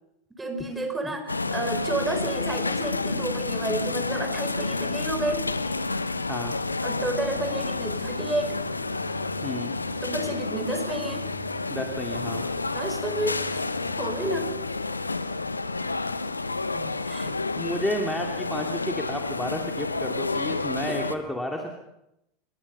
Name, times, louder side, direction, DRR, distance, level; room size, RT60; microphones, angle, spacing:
voice 1, 0.4-5.5 6.8-8.6 10.0-11.3 12.7-13.6 14.0-14.5 17.1-17.4, right 1 dB, 10° right, 5 dB, 5.2 m, -31 dB
sound 1, 1.3-21.1, left 3 dB, 85° left, 1.1 m, -30 dB
sound 2, 7.2-14.6, equal, 90° right, 2.1 m, -42 dB
voice 2, 9.4-9.7 11.7-12.4 16.7-21.7, left 1 dB, 5° left, 2 dB, 2.8 m, -32 dB
26.5 x 22.5 x 5.6 m, 0.84 s
figure-of-eight pair, 85°, 0 cm